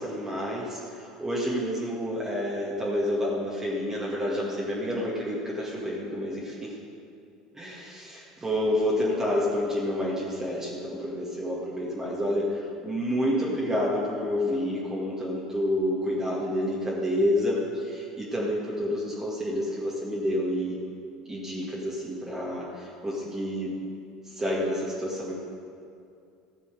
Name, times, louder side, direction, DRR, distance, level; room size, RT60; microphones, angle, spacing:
voice 1, 0.0-6.7 7.5-20.8 21.3-23.7 24.2-25.3, left 1 dB, 15° right, -6 dB, 2.2 m, -29 dB
15.0 x 6.9 x 6.8 m, 2.5 s
figure-of-eight pair, 65°, 3 cm